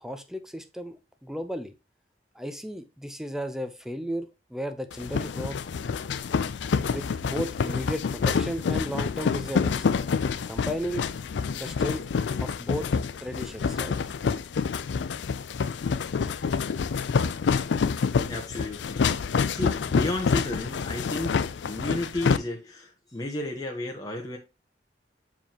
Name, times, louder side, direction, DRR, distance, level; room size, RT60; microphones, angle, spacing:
voice 1, 0.0-1.7 2.3-5.6 6.8-9.9 10.4-11.1 11.5-12.1 12.4-12.9 13.2-14.0, equal, 5° right, 0.7 m, -34 dB
sound 1, 4.9-22.4, left 5 dB, 80° left, 0.4 m, -27 dB
voice 2, 18.2-19.1 19.4-24.4, left 2 dB, 20° left, 1.1 m, -33 dB
7.2 x 4.6 x 2.9 m
head